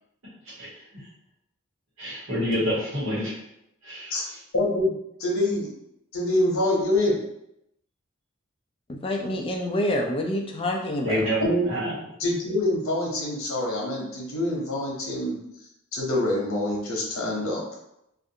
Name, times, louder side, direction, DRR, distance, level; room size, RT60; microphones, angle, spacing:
voice 1, 0.2-1.1 2.0-3.4 3.8-4.4 11.0-12.0, equal, 80° right, -8 dB, 1.3 m, -29 dB
voice 2, 4.5-4.9 5.2-5.7 6.1-7.2 11.4-11.9 12.2-15.4 15.9-17.6, left 1 dB, 85° left, -2 dB, 0.8 m, -25 dB
voice 3, 8.9-11.2, left 1 dB, 25° left, 2 dB, 0.3 m, -27 dB
2.5 x 2.4 x 2.6 m, 0.83 s
head